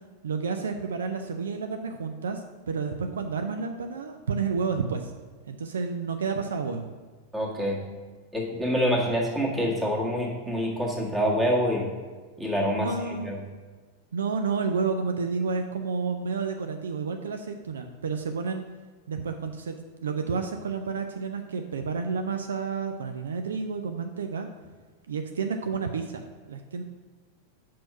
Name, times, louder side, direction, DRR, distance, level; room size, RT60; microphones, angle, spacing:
voice 1, 0.2-5.1 5.5-6.9 12.8-13.3 14.1-18.7 19.1-19.7 20.0-24.5 25.1-26.2 26.5-26.8, right 5 dB, 65° right, 6 dB, 0.4 m, -30 dB
voice 2, 7.3-7.8 8.3-11.9 12.4-13.4, equal, 10° right, -2 dB, 1.7 m, -26 dB
6.1 x 4.6 x 5.8 m, 1.4 s
figure-of-eight pair, 90°, 0 cm